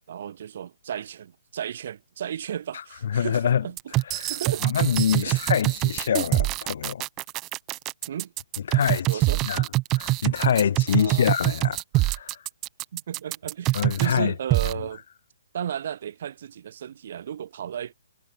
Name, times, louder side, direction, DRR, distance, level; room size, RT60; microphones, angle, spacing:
voice 1, 0.0-3.8 4.3-4.6 5.2-5.4 8.1-8.3 9.1-9.4 10.9-11.3 12.9-15.0 15.5-17.9, right 9 dB, 50° right, 3.3 m, -34 dB
voice 2, 2.7-3.7 4.1-4.4 4.6-7.0 8.7-12.4 13.7-14.3, left 8 dB, 55° left, 1.7 m, -26 dB
sound 1, 3.8-14.2 14.5-14.7, right 19 dB, 20° right, 0.8 m, -24 dB
hypercardioid pair, 150°, 0 cm